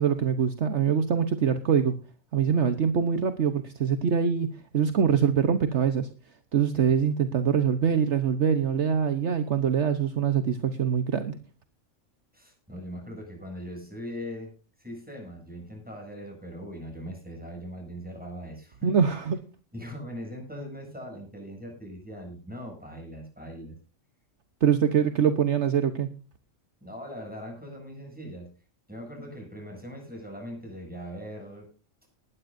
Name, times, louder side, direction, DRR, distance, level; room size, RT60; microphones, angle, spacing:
voice 1, 0.0-1.9 2.3-4.5 4.7-6.1 6.5-11.4 18.8-19.4 24.6-26.1, right 7 dB, 60° right, 9 dB, 1.3 m, -24 dB
voice 2, 12.3-14.5 14.8-18.9 19.7-23.8 26.8-28.5 28.9-31.7, equal, 5° right, 1 dB, 7.8 m, -40 dB
20.0 x 12.0 x 2.6 m, 0.35 s
omnidirectional pair, 1.3 m